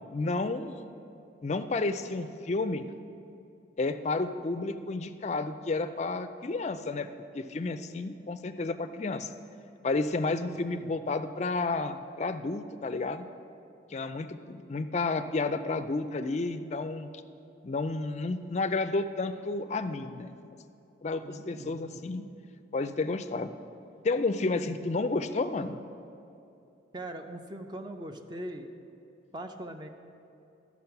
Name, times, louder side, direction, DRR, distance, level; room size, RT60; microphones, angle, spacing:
voice 1, 0.1-0.8 1.4-2.8 3.8-7.1 7.3-9.3 9.8-13.3 13.9-17.1 17.6-20.4 21.0-22.3 22.7-23.5 24.0-25.8, left 3 dB, 35° left, 10 dB, 0.4 m, -31 dB
voice 2, 10.5-10.9 21.2-22.0 24.6-24.8 26.9-28.7 29.3-29.9, right 1 dB, 25° right, 6 dB, 0.5 m, -41 dB
12.0 x 6.0 x 5.8 m, 2.8 s
head